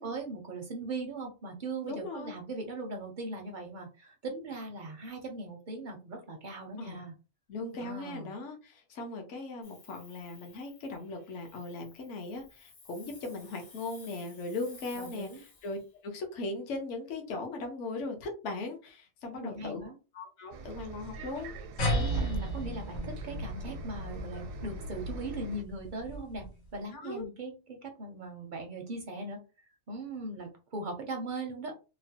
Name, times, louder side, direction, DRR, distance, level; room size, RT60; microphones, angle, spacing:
voice 1, 0.0-7.1 7.7-8.3 14.9-15.4 19.3-20.0 22.0-26.5 26.7-29.4 29.9-31.7, right 2 dB, 55° right, 3 dB, 0.5 m, -39 dB
voice 2, 1.8-2.3 6.8-7.0 7.5-19.8 20.1-21.5 21.9-22.2 26.9-27.3, left 3 dB, 65° left, 2 dB, 1.0 m, -39 dB
Hiss, 9.6-15.9, left 4 dB, 45° left, 0.6 m, -55 dB
Bus, 20.5-25.6, right 2 dB, 80° right, 1.0 m, -43 dB
sound 1, 21.8-26.7, equal, 90° left, 1.5 m, -34 dB
3.0 x 2.1 x 2.7 m, 0.31 s
omnidirectional pair, 1.4 m